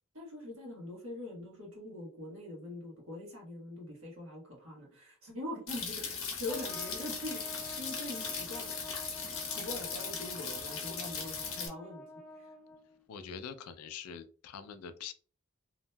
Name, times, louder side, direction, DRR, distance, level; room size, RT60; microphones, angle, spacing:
voice 1, 0.1-8.7 9.4-12.0 12.4-12.5, left 1 dB, 60° right, -2 dB, 1.3 m, -43 dB
sound 1, 5.7-11.7, left 5 dB, 60° left, 0.8 m, -38 dB
Trumpet, 6.5-13.0, left 1 dB, 5° left, 0.3 m, -48 dB
voice 2, 13.1-15.1, left 7 dB, 80° left, 10 dB, 0.4 m, -44 dB
2.8 x 2.6 x 2.2 m, 0.41 s
head